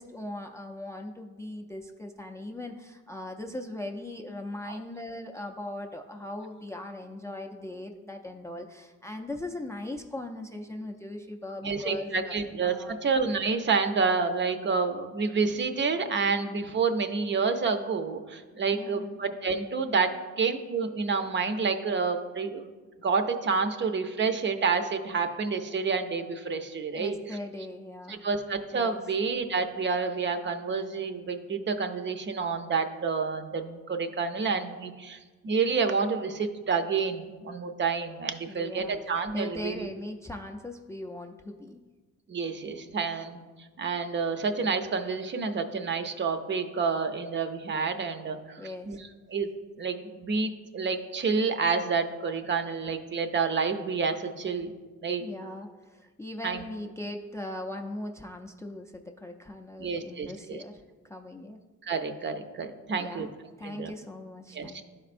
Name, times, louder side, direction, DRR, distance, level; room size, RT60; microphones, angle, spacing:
voice 1, 0.0-12.9 18.7-19.2 26.9-28.2 28.7-29.0 38.5-39.0 39.3-41.8 48.6-49.0 55.2-61.6 62.9-63.3 63.6-64.8, left 1 dB, 10° left, 3 dB, 0.4 m, -39 dB
voice 2, 11.6-20.1 20.4-22.7 23.0-27.2 28.1-35.2 35.4-39.9 42.3-43.4 43.8-49.5 49.8-54.7 55.0-55.2 56.4-56.6 59.8-60.6 61.8-63.3 63.6-63.9 64.5-64.8, right 5 dB, 40° right, 7 dB, 0.6 m, -29 dB
11.0 x 4.3 x 2.5 m, 1.3 s
cardioid pair, 90°, 30 cm